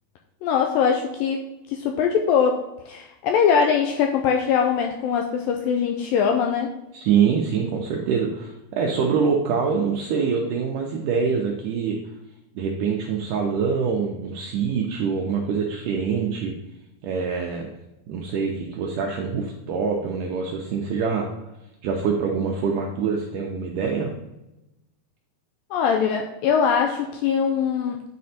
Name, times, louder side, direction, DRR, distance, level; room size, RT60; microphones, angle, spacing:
voice 1, 0.4-6.7 25.7-28.0, left 7 dB, 85° left, 3 dB, 2.0 m, -22 dB
voice 2, 6.9-12.0 12.6-16.5 17.0-17.7 18.1-21.3 21.8-24.1, right 6 dB, 80° right, 1 dB, 1.8 m, -25 dB
9.6 x 4.3 x 4.2 m, 0.95 s
omnidirectional pair, 4.6 m